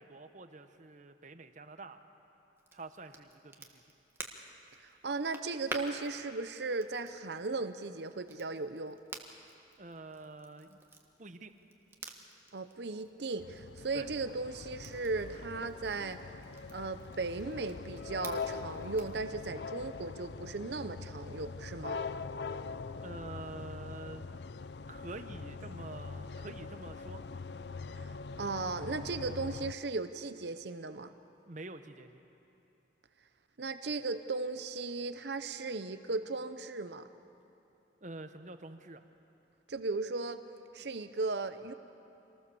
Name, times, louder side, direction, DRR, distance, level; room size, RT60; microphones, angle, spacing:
voice 1, 0.0-2.0 2.7-3.8 9.8-10.8 11.2-11.5 13.9-14.1 23.0-24.3 24.9-27.2 31.5-32.2 38.0-39.0, right 2 dB, 45° right, 9 dB, 1.1 m, -47 dB
Crackle, 2.6-19.2, right 2 dB, 15° right, 1.5 m, -50 dB
voice 2, 4.8-9.0 12.5-16.2 16.7-22.0 27.9-31.1 33.6-37.1 39.7-40.4 40.7-41.7, right 3 dB, 70° right, 10 dB, 0.8 m, -37 dB
sound 1, 13.4-29.7, left 4 dB, 70° left, 0.5 m, -43 dB
26.0 x 19.0 x 7.1 m, 2.9 s
head